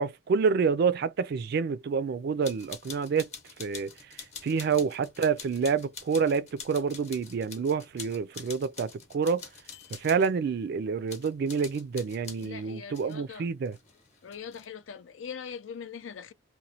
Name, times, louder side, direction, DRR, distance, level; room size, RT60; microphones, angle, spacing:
voice 1, 0.0-3.3 3.6-9.5 9.9-13.8, right 5 dB, 55° right, 0.3 m, -28 dB
sound 1, 2.4-10.3 11.1-12.5 12.9-13.2 13.6-14.6, left 6 dB, 35° left, 0.8 m, -46 dB
voice 2, 12.4-13.5 14.2-16.3, left 7 dB, 85° left, 0.4 m, -42 dB
3.0 x 2.1 x 2.7 m
head